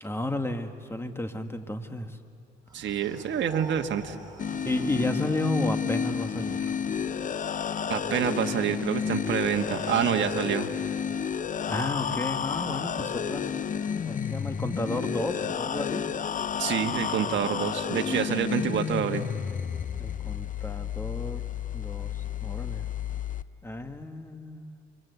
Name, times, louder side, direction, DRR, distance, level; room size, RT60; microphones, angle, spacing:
voice 1, 0.0-2.2 4.6-6.7 11.7-13.5 14.1-16.0 20.0-21.4 21.7-22.1 22.4-22.9 23.6-24.7, left 1 dB, 10° left, 7 dB, 1.9 m, -32 dB
sound 1, 2.7-7.5, right 2 dB, 20° right, 5.6 m, -45 dB
voice 2, 2.7-4.1 7.9-10.7 16.6-19.3, right 9 dB, 65° right, 6 dB, 1.5 m, -27 dB
sound 2, 4.4-23.4, left 7 dB, 40° left, 0.7 m, -31 dB
29.5 x 24.5 x 8.2 m, 2.5 s
cardioid pair, 90°, 20 cm